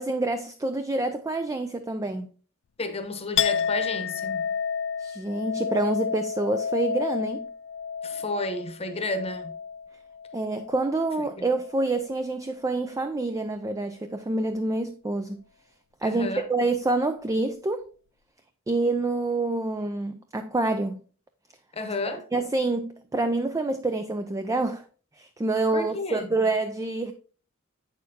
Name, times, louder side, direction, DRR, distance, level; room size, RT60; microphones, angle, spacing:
voice 1, 0.0-2.3 5.0-7.5 10.3-15.4 16.0-17.9 18.7-21.0 22.3-24.8 25.2-27.1, right 2 dB, 15° right, 0.4 m, -27 dB
voice 2, 2.8-4.5 8.0-9.5 11.4-11.5 16.0-16.4 21.7-22.2 25.7-26.3, left 2 dB, 30° left, 0.9 m, -31 dB
Chink clink, 3.4-11.1 11.4-12.1, left 7 dB, 55° left, 0.3 m, -31 dB
8.1 x 6.5 x 2.8 m
head